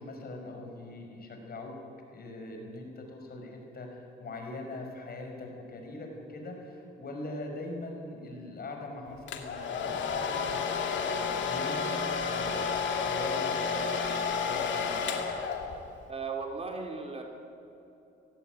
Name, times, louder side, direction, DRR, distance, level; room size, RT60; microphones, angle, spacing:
voice 1, 0.0-1.8 2.1-15.1, left 2 dB, 50° left, 2 dB, 5.4 m, -42 dB
Domestic sounds home sounds, 9.3-16.0, left 5 dB, 70° left, 2.5 m, -31 dB
voice 2, 16.1-17.2, right 4 dB, 30° right, 2 dB, 3.2 m, -36 dB
18.5 x 16.5 x 9.2 m, 2.9 s
cardioid pair, 90°, 20 cm